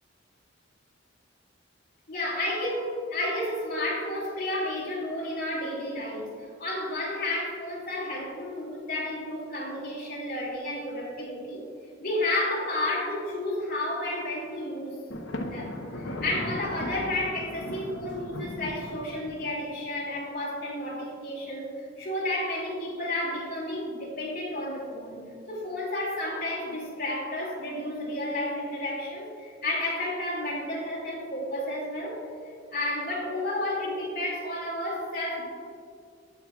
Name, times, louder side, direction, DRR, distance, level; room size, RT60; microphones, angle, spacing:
voice 1, 2.1-11.6 12.0-15.0 15.4-32.2 32.7-35.4, left 1 dB, 50° left, -5 dB, 2.3 m, -31 dB
Thunder, 15.1-19.7, left 1 dB, 80° left, 0.9 m, -37 dB
16.5 x 6.6 x 2.3 m, 2.4 s
head